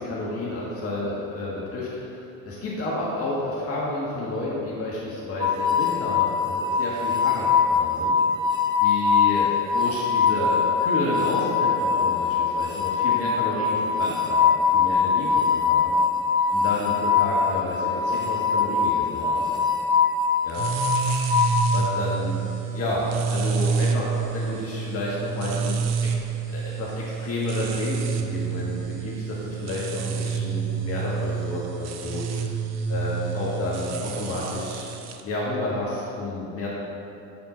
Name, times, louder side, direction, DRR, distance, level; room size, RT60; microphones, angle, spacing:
voice 1, 0.0-8.2 8.8-15.9 16.5-19.5 20.4-20.7 21.7-22.4 22.7-26.1 26.5-32.2 32.9-34.9 35.2-36.7, left 2 dB, 30° left, -5 dB, 1.5 m, -30 dB
sound 1, 5.4-21.6, left 6 dB, 10° right, 1.1 m, -22 dB
sound 2, 20.5-35.2, right 6 dB, 40° right, 0.7 m, -28 dB
9.7 x 4.3 x 4.3 m, 2.8 s
figure-of-eight pair, 70°, 43 cm